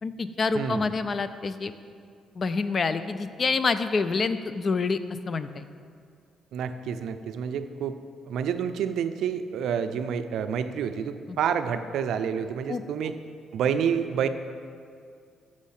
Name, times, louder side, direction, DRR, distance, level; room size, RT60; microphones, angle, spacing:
voice 1, 0.0-1.7 2.4-5.0 5.3-5.6 11.3-11.4 12.7-12.8, left 4 dB, 40° left, 12 dB, 0.4 m, -27 dB
voice 2, 0.5-0.9 6.5-8.0 8.3-13.1 13.5-14.3, right 7 dB, 75° right, 9 dB, 0.4 m, -28 dB
6.3 x 6.2 x 5.8 m, 2.2 s
cardioid pair, 90°, 0 cm